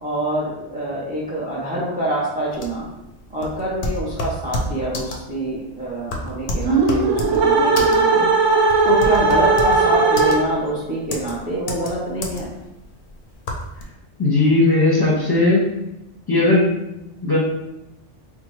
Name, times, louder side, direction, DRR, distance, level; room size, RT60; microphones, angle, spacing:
voice 1, 0.0-2.9 3.3-8.3 8.8-12.5, right 1 dB, 10° right, -5 dB, 0.4 m, -26 dB
sound 1, 2.5-13.8, left 1 dB, 55° left, 0.6 m, -29 dB
sound 2, 6.6-10.7, right 3 dB, 85° right, 1.0 m, -17 dB
voice 2, 14.2-15.6 16.3-16.7 17.2-17.4, left 2 dB, 20° left, -6 dB, 0.8 m, -16 dB
4.3 x 2.2 x 3.0 m, 0.90 s
omnidirectional pair, 1.2 m